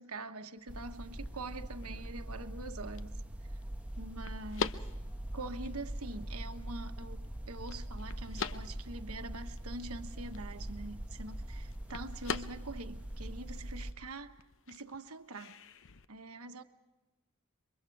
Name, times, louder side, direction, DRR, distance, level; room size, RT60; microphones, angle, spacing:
voice 1, 0.0-3.1 4.0-4.8 5.3-14.4 14.7-15.6 16.1-16.6, right 2 dB, 80° right, 1.2 m, -44 dB
sound 1, 0.6-16.1, left 5 dB, 60° left, 0.8 m, -46 dB
sound 2, 0.7-13.9, right 1 dB, 5° right, 1.0 m, -42 dB
28.0 x 23.5 x 4.7 m
head